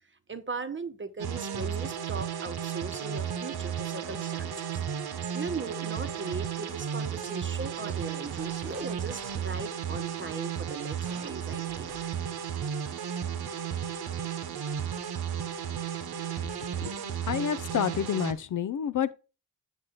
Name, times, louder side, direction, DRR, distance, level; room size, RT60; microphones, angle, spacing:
voice 1, 0.3-4.5 5.3-11.9, right 4 dB, 30° right, 1.0 m, -38 dB
sound 1, 1.2-18.3, right 8 dB, 65° right, 1.0 m, -34 dB
Wind instrument woodwind instrument, 1.3-6.6, right 8 dB, 90° right, 0.8 m, -48 dB
voice 2, 17.3-19.1, left 8 dB, 50° left, 0.5 m, -29 dB
7.5 x 5.5 x 3.9 m
supercardioid pair, 40°, 41 cm